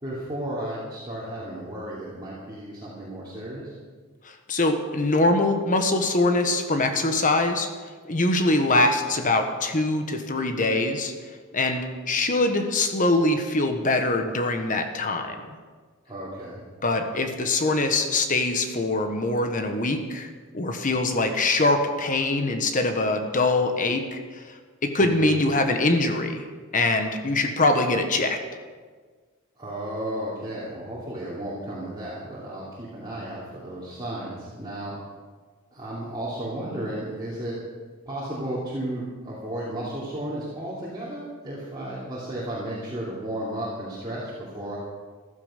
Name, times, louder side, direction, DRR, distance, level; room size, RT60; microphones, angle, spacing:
voice 1, 0.0-3.7 16.1-16.6 25.0-25.4 29.6-34.9 35.7-37.5 38.0-44.8, right 1 dB, 20° right, -9 dB, 2.9 m, -33 dB
voice 2, 4.2-7.7 8.0-11.1 11.5-15.6 16.8-20.3 20.5-24.5 24.8-26.4 26.7-28.4, left 2 dB, 40° left, 6 dB, 1.3 m, -23 dB
14.5 x 12.5 x 5.2 m, 1.5 s
head